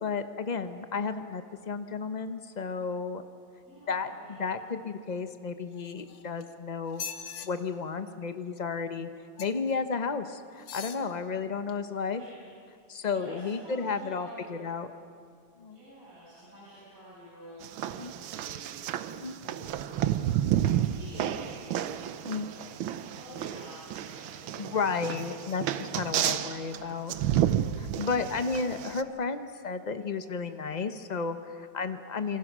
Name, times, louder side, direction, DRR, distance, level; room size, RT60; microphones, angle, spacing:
voice 1, 0.0-3.2 3.9-7.0 7.4-9.1 9.4-12.2 12.9-14.9 15.6-15.8 18.0-18.1 19.1-19.3 22.2-22.5 24.6-27.1 27.8-32.4, left 5 dB, 55° left, 8 dB, 0.4 m, -33 dB
voice 2, 3.6-4.5 12.1-12.3 13.1-14.6 15.7-18.8 19.4-19.9 20.5-25.4 26.1-26.5 27.9-28.6, equal, 45° right, -9 dB, 7.3 m, -49 dB
sound 1, 5.7-6.4 6.9-7.5 9.4-9.7 10.6-11.0 11.7-11.8, left 7 dB, 75° left, 1.8 m, -41 dB
sound 2, 17.6-29.0, right 11 dB, 80° right, 1.6 m, -31 dB
27.5 x 24.5 x 6.1 m, 2.4 s
omnidirectional pair, 2.2 m